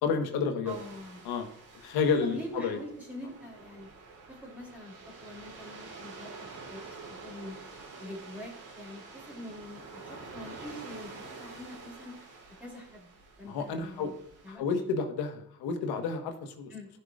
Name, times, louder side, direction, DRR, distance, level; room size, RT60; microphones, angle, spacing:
voice 1, 0.0-0.8 1.2-1.5 1.7-2.8 13.4-14.1 14.5-16.7, left 5 dB, 90° left, 5 dB, 1.5 m, -30 dB
voice 2, 0.6-1.2 2.2-3.9 4.3-7.6 8.0-12.1 12.6-13.1 13.4-14.2 14.4-14.6 16.7-16.9, equal, 5° right, -4 dB, 3.7 m, -44 dB
sound 1, 0.7-14.6, right 3 dB, 75° right, 3.6 m, -48 dB
14.0 x 5.8 x 2.5 m, 0.70 s
supercardioid pair, 70°, 37 cm